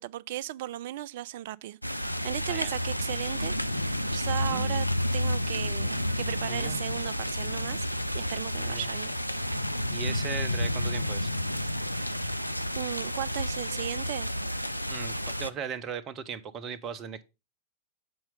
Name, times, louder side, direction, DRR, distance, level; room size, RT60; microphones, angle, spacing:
voice 1, 0.0-3.5 3.8-4.9 5.1-7.9 8.1-9.1 12.7-14.3, right 14 dB, 55° right, 0.3 m, -36 dB
sound 1, 1.8-15.5, left 1 dB, 90° left, 0.3 m, -30 dB
voice 2, 6.5-6.8 8.7-8.9 9.9-11.3 14.9-17.2, right 7 dB, 30° right, 0.7 m, -38 dB
7.8 x 4.4 x 5.1 m
figure-of-eight pair, 90°, 0 cm